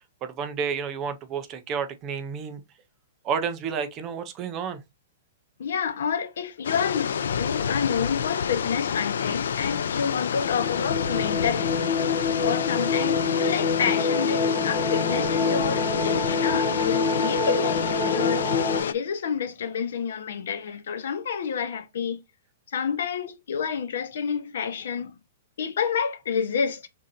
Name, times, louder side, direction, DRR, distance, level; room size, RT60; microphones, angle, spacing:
voice 1, 0.2-2.6 3.2-4.8, right 6 dB, 20° right, 0.5 m, -30 dB
voice 2, 5.6-11.8 12.4-18.5 18.7-22.2 22.7-25.1 25.6-26.9, left 7 dB, 65° left, 0.8 m, -29 dB
sound 1, 6.6-18.9, left 7 dB, 85° left, 0.4 m, -28 dB
sound 2, 10.4-18.8, left 4 dB, 20° left, 1.1 m, -27 dB
5.5 x 3.7 x 2.5 m
hypercardioid pair, 175°, 0 cm